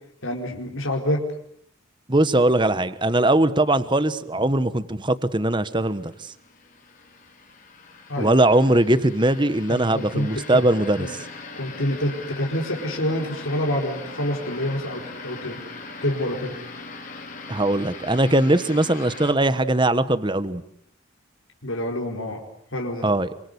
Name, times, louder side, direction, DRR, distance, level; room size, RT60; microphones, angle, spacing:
voice 1, 0.2-1.2 8.1-8.4 9.7-10.6 11.0-11.1 11.6-15.6 16.0-16.6 21.6-22.4 22.7-23.1, left 1 dB, 80° left, 1 dB, 4.8 m, -27 dB
voice 2, 2.1-6.3 8.2-11.2 17.5-20.6 23.0-23.3, right 1 dB, 25° right, 13 dB, 1.3 m, -20 dB
sound 1, 5.8-19.3, left 3 dB, 40° left, 4.8 m, -40 dB
28.5 x 25.5 x 8.1 m, 0.69 s
head